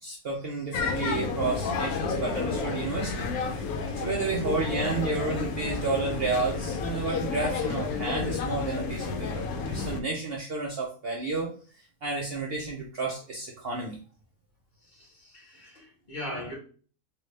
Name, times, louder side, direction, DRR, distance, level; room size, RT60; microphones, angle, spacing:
voice 1, 0.0-3.3 3.5-3.7 4.0-11.6 12.0-14.0, right 3 dB, 55° right, -1 dB, 0.7 m, -31 dB
sound 1, 0.7-10.0, left 4 dB, 80° left, 1.1 m, -31 dB
voice 2, 14.8-16.5, left 1 dB, 35° left, -3 dB, 1.3 m, -40 dB
3.8 x 2.4 x 3.2 m, 0.40 s
omnidirectional pair, 1.5 m